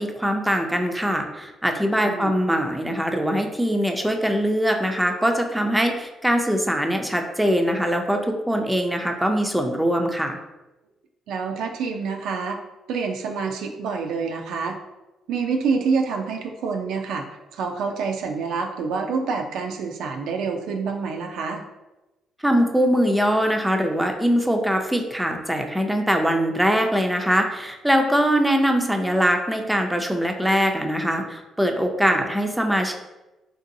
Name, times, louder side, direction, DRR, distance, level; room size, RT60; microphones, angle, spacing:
voice 1, 0.0-10.4 22.4-32.9, equal, 5° right, 3 dB, 0.4 m, -22 dB
voice 2, 11.3-12.6 12.9-14.8 15.3-17.2 17.5-21.6 32.1-32.3, right 5 dB, 85° right, 3 dB, 0.4 m, -27 dB
3.7 x 2.7 x 2.6 m, 1.1 s
cardioid pair, 90°, 0 cm